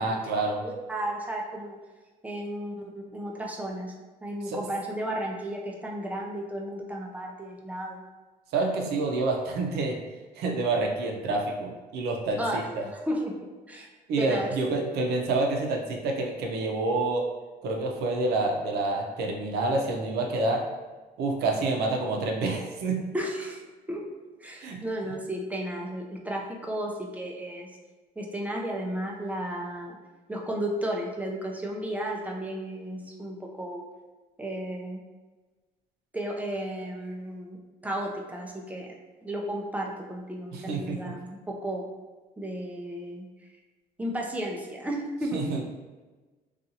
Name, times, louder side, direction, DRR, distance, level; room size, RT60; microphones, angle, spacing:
voice 1, 0.0-0.6 4.5-4.6 8.5-10.0 10.4-12.8 14.1-17.2 17.6-20.6 21.2-23.0 24.6-24.8 40.5-41.0 45.3-45.6, right 3 dB, 75° right, 1 dB, 0.6 m, -28 dB
voice 2, 0.6-1.8 2.2-3.9 4.2-8.0 12.4-13.9 14.2-14.5 23.1-23.6 23.9-24.0 24.4-27.7 28.2-30.0 30.3-33.8 34.4-35.0 36.1-37.6 37.8-38.9 39.2-41.9 42.4-43.3 44.0-45.6, right 1 dB, 10° right, -1 dB, 0.4 m, -33 dB
2.7 x 2.4 x 2.7 m, 1.2 s
cardioid pair, 110°, 17 cm